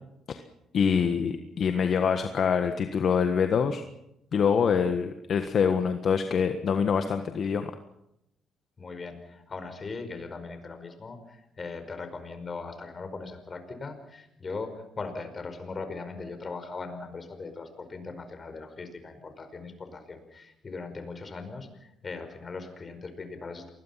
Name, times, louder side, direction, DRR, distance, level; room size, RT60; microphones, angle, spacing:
voice 1, 0.7-3.8 4.3-7.7, left 6 dB, 55° left, 8 dB, 1.5 m, -25 dB
voice 2, 8.8-23.7, left 4 dB, 35° left, 8 dB, 5.2 m, -39 dB
28.0 x 21.5 x 5.9 m, 0.82 s
cardioid pair, 90°, 0 cm